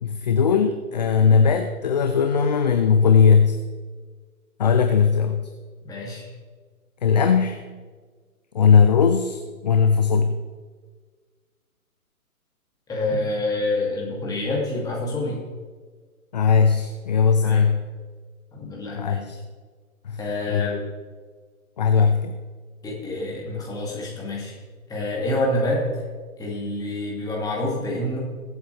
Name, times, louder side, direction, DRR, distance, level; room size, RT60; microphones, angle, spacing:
voice 1, 0.0-3.6 4.6-5.5 7.0-7.6 8.5-10.4 16.3-17.8 19.0-19.4 20.0-20.2 20.5-20.7 21.8-22.4, left 6 dB, 30° left, 7 dB, 0.5 m, -19 dB
voice 2, 5.8-6.2 12.9-15.4 17.4-17.7 18.5-19.2 20.2-20.8 22.8-24.5 24.9-25.8 26.4-28.2, left 2 dB, 10° left, -4 dB, 2.5 m, -27 dB
21.5 x 8.1 x 3.4 m, 1.5 s
figure-of-eight pair, 135°, 43 cm